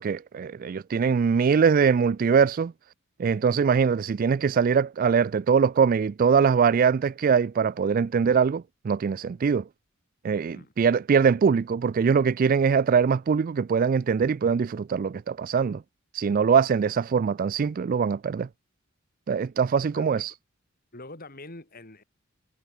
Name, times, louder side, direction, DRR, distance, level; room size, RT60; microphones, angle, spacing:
voice 1, 0.0-2.7 3.2-9.6 10.2-15.8 16.1-18.5 19.3-20.3, right 6 dB, 40° right, 0.3 m, -22 dB
voice 2, 20.9-22.0, left 2 dB, 45° left, 3.6 m, -44 dB
head